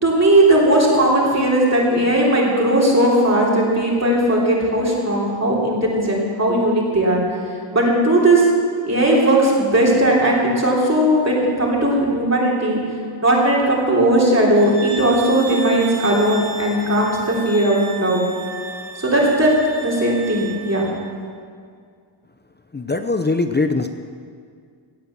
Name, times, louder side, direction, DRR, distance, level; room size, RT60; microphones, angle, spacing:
voice 1, 0.0-7.2 7.7-8.4 8.8-12.8 13.2-18.3 19.0-20.9, right 1 dB, 30° right, -4 dB, 3.4 m, -17 dB
sound 1, 14.5-20.9, right 3 dB, 75° right, 4.2 m, -34 dB
voice 2, 22.7-23.9, left 3 dB, 20° left, 7 dB, 0.6 m, -21 dB
17.0 x 8.5 x 7.2 m, 2.1 s
wide cardioid pair, 100°, 48 cm